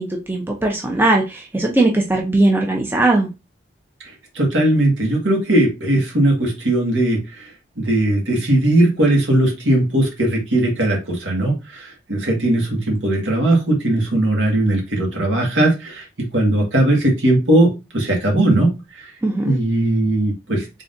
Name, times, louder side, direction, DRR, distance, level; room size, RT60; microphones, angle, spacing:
voice 1, 0.0-3.3 19.2-19.6, right 2 dB, 10° right, 0 dB, 0.6 m, -19 dB
voice 2, 4.4-7.5 7.8-16.1 16.3-18.7 19.0-19.1 19.5-20.8, right 1 dB, 75° right, 0 dB, 1.7 m, -18 dB
3.7 x 3.7 x 2.6 m, 0.26 s
head